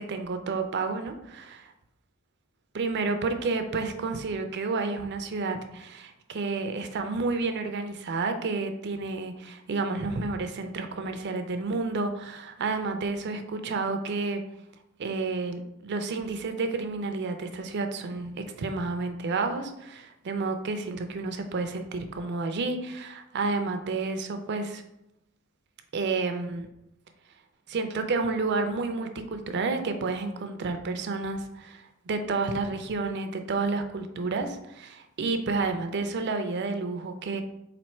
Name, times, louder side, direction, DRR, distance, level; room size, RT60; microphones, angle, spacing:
voice 1, 0.0-1.7 2.7-14.4 15.0-18.3 18.6-24.8 25.9-26.7 27.7-37.4, right 3 dB, 50° right, 7 dB, 0.4 m, -30 dB
4.3 x 2.6 x 4.3 m, 0.83 s
head